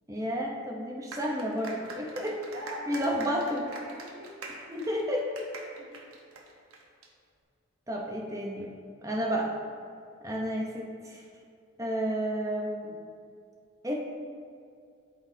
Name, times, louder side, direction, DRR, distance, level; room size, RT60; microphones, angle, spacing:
voice 1, 0.1-2.4 2.9-3.6 4.7-5.3 7.9-8.7 9.0-9.5 10.2-11.2 11.8-13.0 13.8-13.9, equal, 15° right, -1 dB, 0.7 m, -31 dB
sound 1, 1.1-7.1, right 3 dB, 90° right, 1.0 m, -44 dB
voice 2, 2.5-3.4 3.6-4.3 4.9-5.3 5.8-6.0, equal, 50° right, -1 dB, 1.1 m, -43 dB
12.0 x 4.1 x 2.7 m, 2.3 s
head